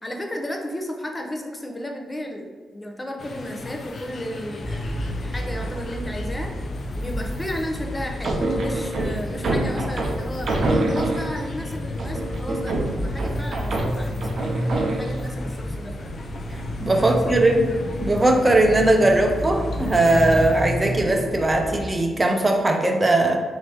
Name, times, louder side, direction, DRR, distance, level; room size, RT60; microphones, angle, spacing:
voice 1, 0.0-6.5 7.0-10.5 10.9-16.1 17.0-17.2 17.5-17.7, equal, 20° left, 2 dB, 0.7 m, -34 dB
sound 1, 3.2-20.7, left 3 dB, 55° left, 0.4 m, -37 dB
sound 2, 4.6-21.8, equal, ahead, 1.4 m, -31 dB
sound 3, 8.2-11.5 12.0-15.2, right 2 dB, 60° right, 0.6 m, -26 dB
voice 2, 16.5-17.7 18.0-23.4, right 2 dB, 25° right, 3 dB, 0.7 m, -19 dB
3.0 x 2.8 x 4.5 m, 1.5 s
supercardioid pair, 45°, 0 cm